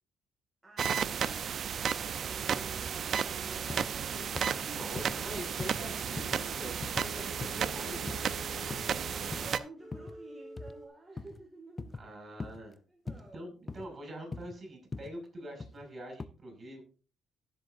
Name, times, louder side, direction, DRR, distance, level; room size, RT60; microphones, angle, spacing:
voice 1, 0.6-1.6 8.9-12.0 12.2-12.3 12.9-13.9, right 2 dB, 15° right, 2.2 m, -53 dB
sound 1, 0.8-9.6, right 7 dB, 55° right, 0.7 m, -33 dB
sound 2, 2.2-3.8 4.1-9.5 9.8-10.9, left 3 dB, 50° left, 3.0 m, -50 dB
sound 3, 3.7-3.9 4.4-4.5 5.0-5.2 5.6-5.8 6.2-6.4 6.8-7.1 7.4-7.7 8.1-8.3 8.7-8.9 9.3-9.5 9.9-10.2 10.6-10.8 11.2-11.4 11.8-12.1 12.4-12.6 13.1-13.3 13.7-13.9 14.3-14.6 14.9-15.1 15.6-15.8 16.2-16.3, left 3 dB, 30° left, 0.7 m, -41 dB
voice 2, 4.6-8.2 12.0-12.8 13.1-16.8, equal, 40° right, 6.6 m, -45 dB
18.0 x 7.8 x 2.7 m
cardioid pair, 90°, 0 cm